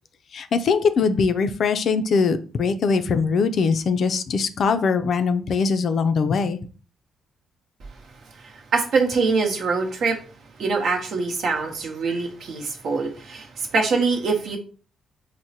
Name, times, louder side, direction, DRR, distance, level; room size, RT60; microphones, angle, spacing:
voice 1, 0.3-6.6, left 5 dB, 55° left, 10 dB, 0.4 m, -21 dB
voice 2, 8.4-10.2 10.6-14.6, right 4 dB, 65° right, 3 dB, 0.9 m, -24 dB
4.6 x 2.1 x 2.8 m, 0.39 s
cardioid pair, 90°, 0 cm